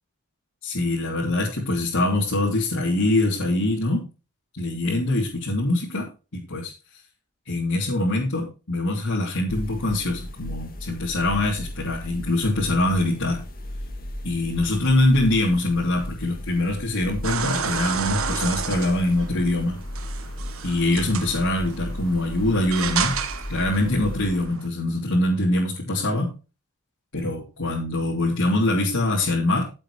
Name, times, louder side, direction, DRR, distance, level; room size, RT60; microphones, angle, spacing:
voice 1, 0.6-4.1 4.6-6.7 7.4-13.4 14.2-19.8 20.6-23.2 23.5-26.3 27.1-29.6, left 2 dB, 65° left, -4 dB, 3.1 m, -23 dB
sound 1, 9.5-24.5, left 1 dB, 40° left, 2.3 m, -36 dB
sound 2, 17.2-24.7, right 7 dB, 65° right, 1.4 m, -31 dB
15.0 x 7.7 x 3.3 m, 0.31 s
head